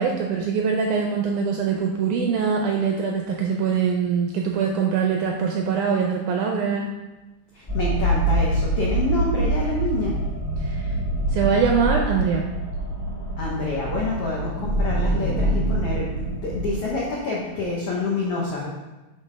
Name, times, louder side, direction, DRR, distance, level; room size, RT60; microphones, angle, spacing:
voice 1, 0.0-6.9 10.6-10.9 11.3-12.4, right 6 dB, 80° right, 1 dB, 1.8 m, -23 dB
voice 2, 7.5-10.1 13.4-18.7, left 3 dB, 85° left, -4 dB, 1.3 m, -27 dB
sound 1, 7.7-16.7, right 1 dB, 50° left, 1.0 m, -25 dB
7.6 x 3.9 x 5.0 m, 1.1 s
omnidirectional pair, 4.1 m